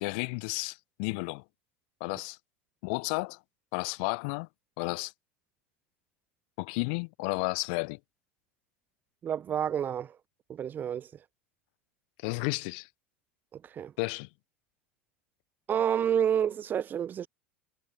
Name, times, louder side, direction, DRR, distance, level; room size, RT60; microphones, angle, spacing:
voice 1, 0.0-1.4 2.0-2.4 2.8-3.4 3.7-4.5 4.8-5.1 6.6-8.0 12.2-12.9 14.0-14.3, left 34 dB, 55° left, 1.1 m, -32 dB
voice 2, 9.2-10.2 10.5-11.1 13.5-13.9 15.7-17.3, right 9 dB, 30° right, 0.7 m, -29 dB
figure-of-eight pair, 75°, 6 cm